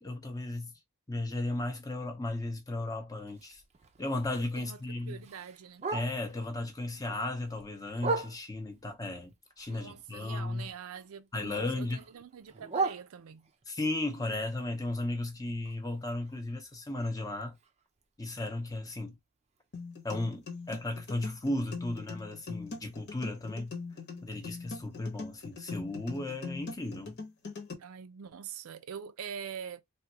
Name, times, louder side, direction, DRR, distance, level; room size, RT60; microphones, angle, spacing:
voice 1, 0.0-0.7 1.1-3.6 4.0-5.2 5.9-10.7 11.3-12.0 13.7-17.6 18.2-19.2 20.0-23.7 24.2-27.2, left 2 dB, 15° left, 0.6 m, -35 dB
Bark, 3.3-6.5 6.9-8.8 9.2-11.1 11.3-13.7 14.1-18.0 18.3-18.4 18.7-19.1 19.6-19.7 20.0-20.1 20.6-20.7, right 4 dB, 30° right, 0.4 m, -39 dB
voice 2, 4.6-5.9 9.7-13.5 27.8-29.8, right 7 dB, 85° right, 0.5 m, -44 dB
sound 1, 19.7-27.7, left 4 dB, 55° left, 1.0 m, -42 dB
3.4 x 2.2 x 2.8 m
head